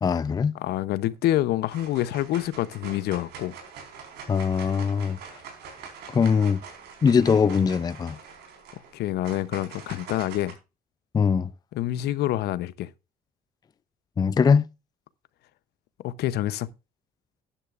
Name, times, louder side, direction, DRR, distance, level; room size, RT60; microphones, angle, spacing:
voice 1, 0.0-0.5 4.3-5.2 6.1-6.6 7.0-8.2 11.1-11.5 14.2-14.6, left 6 dB, 25° left, 0.4 m, -21 dB
voice 2, 0.5-3.5 8.9-10.5 11.7-12.9 16.0-16.7, left 14 dB, 75° left, 0.7 m, -27 dB
sound 1, 1.0-1.4 1.7-10.5, right 6 dB, 80° right, 4.5 m, -44 dB
12.0 x 10.0 x 2.5 m
cardioid pair, 110°, 17 cm